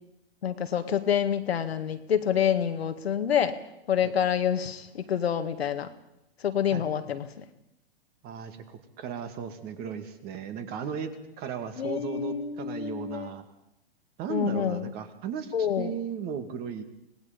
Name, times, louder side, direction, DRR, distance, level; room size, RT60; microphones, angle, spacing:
voice 1, 0.4-3.6 3.9-5.9 6.4-7.4 11.8-13.3 14.3-14.9 15.5-15.9, left 9 dB, 75° left, 8 dB, 2.0 m, -27 dB
voice 2, 8.2-13.5 14.2-16.8, right 7 dB, 30° right, 8 dB, 2.3 m, -36 dB
25.5 x 19.0 x 5.3 m, 0.85 s
hypercardioid pair, 120°, 31 cm